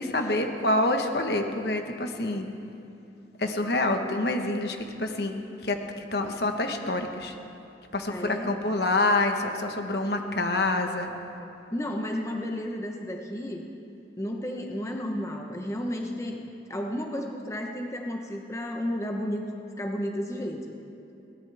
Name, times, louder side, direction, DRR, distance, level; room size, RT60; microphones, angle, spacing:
voice 1, 0.0-2.5 3.4-5.3 5.6-7.3 7.9-11.1, left 2 dB, 60° left, 5 dB, 1.2 m, -27 dB
voice 2, 8.1-8.5 11.7-13.6 14.2-16.4 16.7-19.4 19.8-20.7, equal, 15° left, 2 dB, 1.0 m, -32 dB
22.0 x 18.0 x 3.5 m, 2.8 s
head